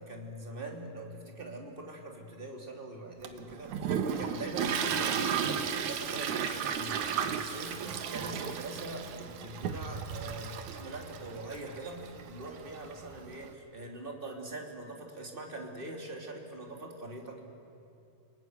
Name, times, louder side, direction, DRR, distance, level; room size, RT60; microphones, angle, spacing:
voice 1, 0.0-17.5, right 2 dB, 15° right, 1 dB, 2.4 m, -43 dB
Toilet flush, 3.2-13.5, right 7 dB, 60° right, 2.2 m, -34 dB
29.5 x 20.5 x 9.6 m, 2.7 s
omnidirectional pair, 4.8 m